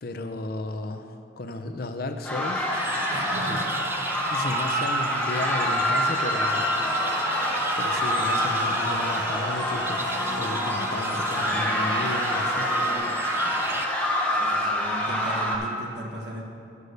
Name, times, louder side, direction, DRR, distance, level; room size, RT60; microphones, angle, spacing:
voice 1, 0.0-2.7 3.5-3.6 4.3-6.7 7.8-10.1 10.4-12.7, left 2 dB, 50° left, 8 dB, 0.5 m, -34 dB
sound 1, 2.2-15.6, equal, 10° left, 0.9 m, -26 dB
sound 2, 2.7-13.9, right 2 dB, 10° right, 0.3 m, -36 dB
voice 2, 3.1-3.7 14.4-16.4, right 1 dB, 60° right, -1 dB, 1.3 m, -36 dB
Domestic sounds home sounds, 6.7-13.0, right 1 dB, 45° right, 1.9 m, -38 dB
8.3 x 6.7 x 6.4 m, 2.7 s
head